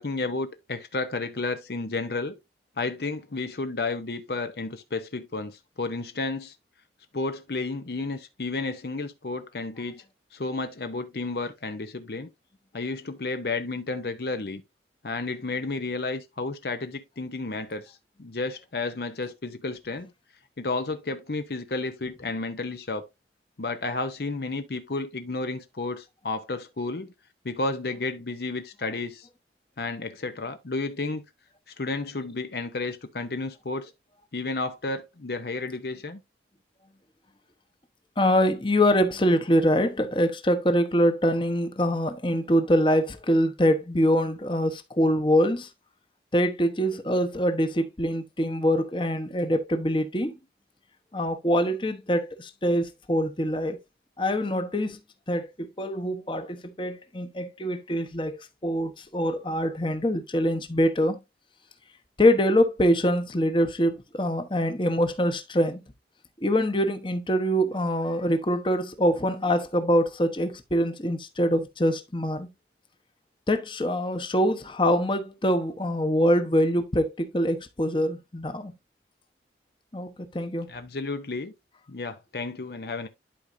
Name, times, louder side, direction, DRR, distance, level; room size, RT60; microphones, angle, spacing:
voice 1, 0.0-2.4 2.8-6.6 7.1-10.0 10.3-12.3 12.7-14.6 15.0-20.1 20.6-23.1 23.6-27.1 27.4-29.3 29.8-31.2 31.7-33.9 34.3-36.2 80.7-81.5 81.9-83.1, left 3 dB, 55° left, 0.7 m, -32 dB
voice 2, 38.2-45.7 46.3-50.4 51.1-53.8 54.2-55.0 55.3-61.2 62.2-65.8 66.4-72.5 73.5-78.7 79.9-80.7, equal, 25° left, 1.0 m, -24 dB
11.5 x 4.9 x 2.6 m
head